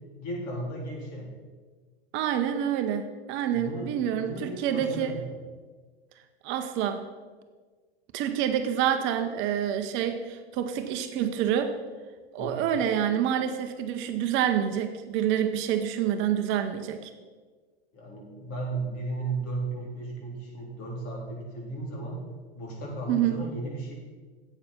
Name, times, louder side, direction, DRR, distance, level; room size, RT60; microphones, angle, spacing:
voice 1, 0.2-1.3 3.5-5.3 12.4-12.7 17.9-22.2 22.6-23.9, right 2 dB, 45° left, -2 dB, 3.6 m, -35 dB
voice 2, 2.1-5.1 6.4-7.1 8.1-11.8 12.3-17.1 23.1-23.4, right 9 dB, 40° right, 7 dB, 0.8 m, -27 dB
8.8 x 8.3 x 5.4 m, 1.4 s
hypercardioid pair, 100°, 31 cm